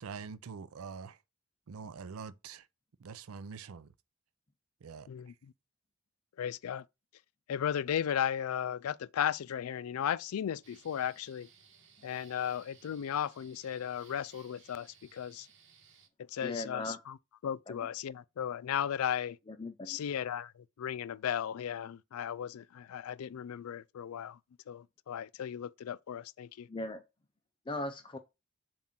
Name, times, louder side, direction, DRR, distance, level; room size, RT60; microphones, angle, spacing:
voice 1, 0.0-1.2 1.7-2.7 3.0-3.9 4.8-5.4, right 5 dB, 80° right, 0.5 m, -45 dB
voice 2, 6.4-6.8 7.5-11.5 12.0-15.5 16.2-17.2 17.4-19.4 19.9-24.4 24.7-26.7, left 9 dB, 80° left, 0.4 m, -35 dB
sound 1, 10.6-16.1, right 6 dB, 60° right, 1.2 m, -61 dB
voice 3, 16.4-17.0 17.7-17.8 19.5-20.0 26.7-27.0 27.7-28.2, left 2 dB, 25° left, 0.5 m, -38 dB
7.3 x 2.5 x 5.7 m
head